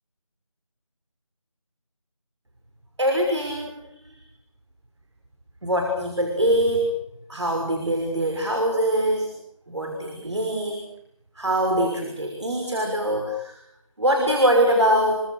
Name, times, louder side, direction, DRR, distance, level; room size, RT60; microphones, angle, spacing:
voice 1, 3.0-3.8 5.6-6.9 7.3-9.3 9.7-10.9 11.4-13.6 14.0-15.2, right 1 dB, 55° right, 3 dB, 6.1 m, -23 dB
27.5 x 25.0 x 6.6 m, 0.74 s
figure-of-eight pair, 175°, 17 cm